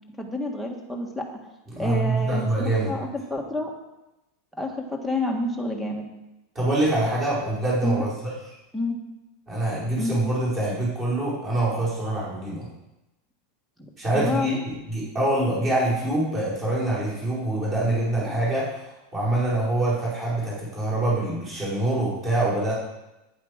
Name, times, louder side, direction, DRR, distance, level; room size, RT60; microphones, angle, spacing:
voice 1, 0.2-1.3 1.8-3.7 4.6-6.0 7.8-8.0 8.7-9.0 10.0-10.2 13.8-14.6, left 2 dB, ahead, 2 dB, 1.6 m, -29 dB
voice 2, 1.7-2.9 6.5-8.3 9.5-12.7 14.0-22.7, right 1 dB, 20° right, -7 dB, 5.0 m, -25 dB
11.0 x 9.7 x 5.1 m, 0.96 s
supercardioid pair, 165°, 0 cm